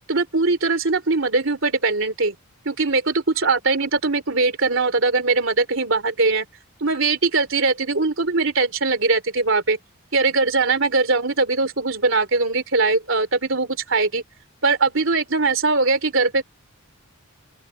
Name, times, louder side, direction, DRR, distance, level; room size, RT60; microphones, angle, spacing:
voice 1, 0.1-2.4 2.7-6.5 6.8-9.8 10.1-14.2 14.6-16.4, right 3 dB, 60° right, 3.5 m, -21 dB
open air
head